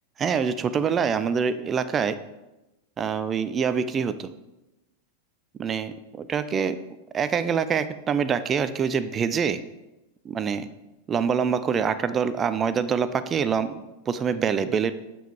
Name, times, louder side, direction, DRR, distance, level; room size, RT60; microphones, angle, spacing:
voice 1, 0.2-2.2 3.0-4.3 5.6-6.8 7.1-9.6 10.3-10.7 11.1-14.9, right 6 dB, 25° right, 13 dB, 0.4 m, -25 dB
7.0 x 5.7 x 4.7 m, 0.99 s
figure-of-eight pair, 90°, 0 cm